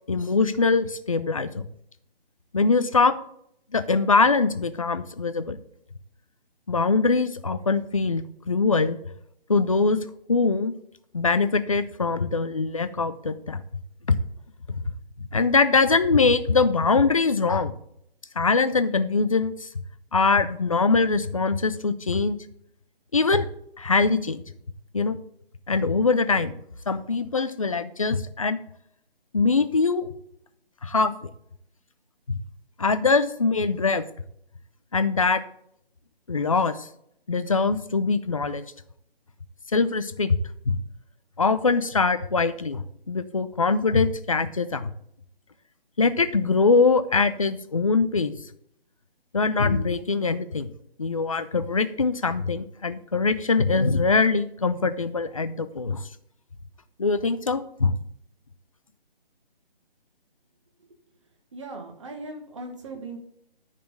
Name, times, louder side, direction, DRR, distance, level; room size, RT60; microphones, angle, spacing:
voice 1, 0.1-1.7 2.5-3.2 3.7-5.6 6.7-9.0 9.5-10.0 10.3-10.7 11.1-13.6 14.1-14.2 14.7-14.8 15.3-17.7 18.4-19.7 20.1-22.4 23.1-23.5 23.8-24.4 24.9-25.2 25.7-26.5 26.9-28.6 29.3-30.1 30.8-31.3 32.8-34.0 34.9-35.4 36.3-36.9 37.3-38.6 39.7-40.4 40.7-40.8 41.4-44.9 46.0-48.3 49.3-50.7 51.0-56.0 57.0-58.0, left 4 dB, 35° left, 12 dB, 0.5 m, -22 dB
voice 2, 61.5-63.2, right 2 dB, 30° right, 3 dB, 1.6 m, -38 dB
10.5 x 4.3 x 6.7 m, 0.70 s
hypercardioid pair, 170°, 30 cm